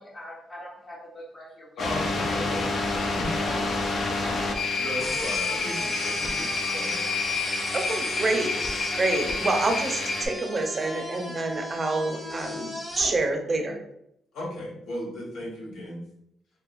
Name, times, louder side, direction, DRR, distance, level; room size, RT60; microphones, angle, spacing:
voice 1, 0.0-1.8 2.7-4.7, equal, 30° left, -8 dB, 1.0 m, -43 dB
voice 2, 1.8-2.7 3.2-3.4 4.8-7.0 14.3-16.0, left 1 dB, 85° left, -4 dB, 1.3 m, -36 dB
sound 1, 1.8-10.3, left 3 dB, 55° left, 0.5 m, -28 dB
sound 2, 5.0-13.1, equal, 5° left, 1.1 m, -37 dB
voice 3, 7.7-13.8, right 2 dB, 35° right, 4 dB, 0.6 m, -27 dB
3.3 x 2.8 x 2.5 m, 0.76 s
cardioid pair, 110°, 0 cm